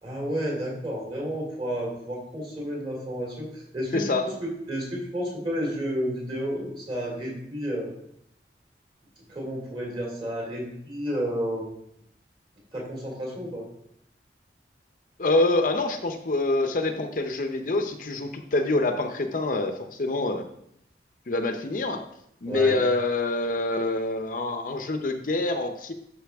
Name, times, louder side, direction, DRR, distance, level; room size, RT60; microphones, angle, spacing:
voice 1, 0.0-7.9 9.3-11.7 12.7-13.7 22.5-22.7, equal, 30° right, -1 dB, 2.7 m, -31 dB
voice 2, 3.9-4.3 15.2-20.4 21.3-22.0 22.4-25.9, left 2 dB, 50° left, 6 dB, 0.6 m, -26 dB
11.5 x 5.5 x 3.5 m, 0.74 s
head